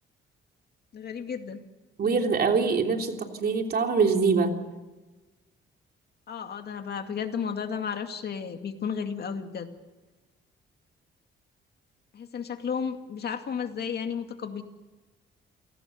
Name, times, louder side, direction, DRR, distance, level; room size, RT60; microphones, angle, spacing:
voice 1, 0.9-1.6 6.3-9.7 12.1-14.6, left 6 dB, 55° left, 6 dB, 2.3 m, -33 dB
voice 2, 2.0-4.5, right 5 dB, 50° right, 4 dB, 3.4 m, -24 dB
28.5 x 18.5 x 6.7 m, 1.2 s
cardioid pair, 90°, 20 cm